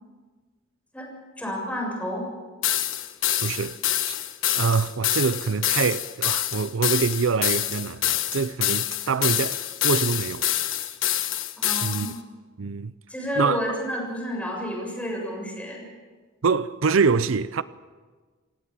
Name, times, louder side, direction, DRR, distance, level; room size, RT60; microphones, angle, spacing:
voice 1, 1.4-2.3 11.6-12.2 13.1-15.9, equal, 5° left, 7.1 m, -30 dB
sound 1, 2.6-12.1, left 12 dB, 70° left, 1.3 m, -26 dB
voice 2, 3.4-3.8 4.0-4.1 4.5-10.9 11.8-12.1 12.6-12.9 13.4-13.6 16.4-17.6, right 5 dB, 75° right, 0.6 m, -25 dB
28.0 x 17.0 x 7.4 m
head